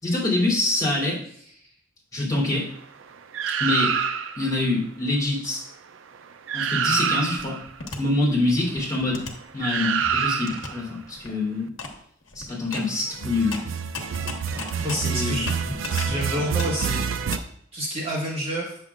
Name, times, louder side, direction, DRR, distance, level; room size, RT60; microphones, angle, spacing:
voice 1, 0.0-1.2 2.1-2.7 3.6-3.9 4.3-5.6 6.5-7.6 8.0-9.3 9.5-11.7 12.3-13.7 15.0-15.4, left 2 dB, 20° left, -6 dB, 3.4 m, -25 dB
sound 1, 3.3-4.5 6.1-6.2 6.5-7.6 9.6-10.8 13.1-17.4, right 7 dB, 75° right, 0.4 m, -27 dB
sound 2, 7.4-8.0 8.5-10.0 10.5-10.7 11.0-11.3 11.8-12.0 12.2-16.2 16.5-17.4, left 3 dB, 90° left, 1.2 m, -36 dB
voice 2, 14.8-15.5 15.9-17.0 17.7-18.8, equal, 30° right, -5 dB, 1.5 m, -28 dB
8.8 x 6.9 x 2.4 m, 0.67 s
head